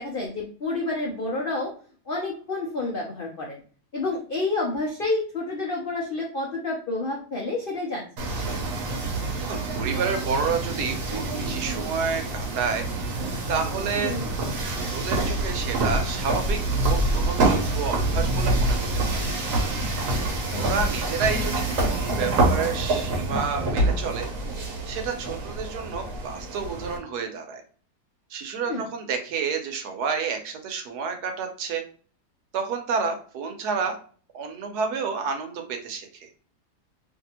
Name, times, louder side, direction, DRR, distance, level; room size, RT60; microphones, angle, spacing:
voice 1, 0.0-1.7 2.1-3.6 3.9-8.1 14.0-14.3 20.5-20.6 28.6-28.8, left 2 dB, 85° left, -2 dB, 0.4 m, -29 dB
sound 1, 8.2-27.0, right 2 dB, 60° right, 1.0 m, -26 dB
voice 2, 9.4-12.9 13.1-14.1 14.8-16.6 16.8-19.3 20.5-27.6 28.3-31.8 32.5-34.0 34.3-36.3, right 5 dB, 75° right, 5 dB, 1.2 m, -30 dB
2.8 x 2.6 x 2.7 m, 0.42 s
omnidirectional pair, 1.8 m